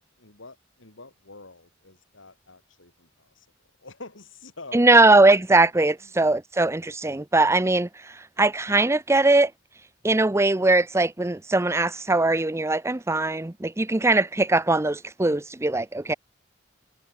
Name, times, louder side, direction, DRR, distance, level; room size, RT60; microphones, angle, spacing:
voice 1, 0.0-3.5 3.8-5.0 6.0-6.2, left 3 dB, 90° left, 3.5 m, -46 dB
voice 2, 4.7-7.9 8.4-9.5 10.0-16.1, right 2 dB, 15° right, 0.7 m, -20 dB
head